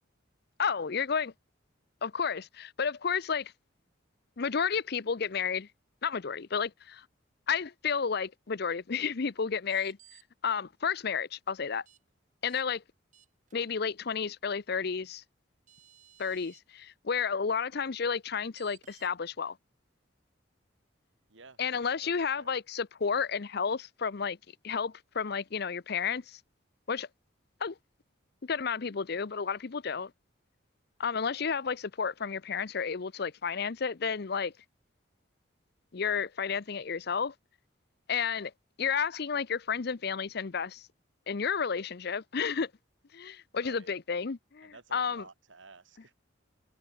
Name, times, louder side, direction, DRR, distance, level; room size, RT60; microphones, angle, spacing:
voice 1, 0.6-1.3 2.0-3.5 4.4-5.7 6.0-7.0 7.5-10.0 10.4-11.8 12.4-12.8 13.5-15.2 16.2-19.6 21.6-24.4 24.6-26.4 26.9-27.1 27.6-27.7 28.4-30.1 31.0-34.5 35.9-37.3 38.1-38.5 38.8-40.9 41.3-42.7 43.1-45.2, left 6 dB, 55° left, 0.6 m, -31 dB
sound 1, 9.6-10.2 11.9-12.0 12.5-12.6 13.1-13.5 15.2-15.3 15.7-16.6 18.6-19.1, right 9 dB, 40° right, 6.6 m, -58 dB
voice 2, 21.3-22.5 43.5-43.9 44.6-46.1, right 3 dB, 75° right, 2.2 m, -54 dB
head